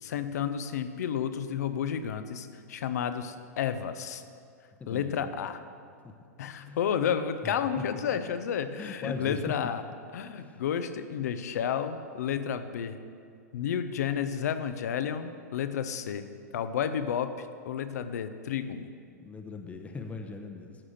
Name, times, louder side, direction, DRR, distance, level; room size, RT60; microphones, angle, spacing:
voice 1, 0.0-4.2 4.9-5.6 6.4-9.8 10.1-13.0 13.5-16.3 16.5-18.9, left 8 dB, 65° left, 10 dB, 0.7 m, -31 dB
voice 2, 4.8-5.3 6.0-6.1 6.6-6.8 7.4-7.8 8.8-9.5 10.4-10.6 19.2-20.8, left 4 dB, 15° left, 4 dB, 0.9 m, -39 dB
13.5 x 4.9 x 6.5 m, 2.3 s
hypercardioid pair, 105°, 9 cm